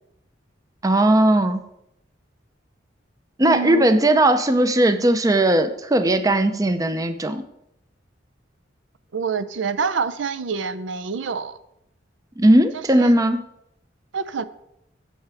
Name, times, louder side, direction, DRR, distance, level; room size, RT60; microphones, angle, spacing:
voice 1, 0.8-1.6 3.4-7.4 12.4-13.4, right 1 dB, 20° right, 9 dB, 0.5 m, -18 dB
voice 2, 3.4-3.9 9.1-11.6 12.7-13.1 14.1-14.4, right 5 dB, 75° right, 12 dB, 0.5 m, -27 dB
15.5 x 5.7 x 3.4 m, 0.81 s
head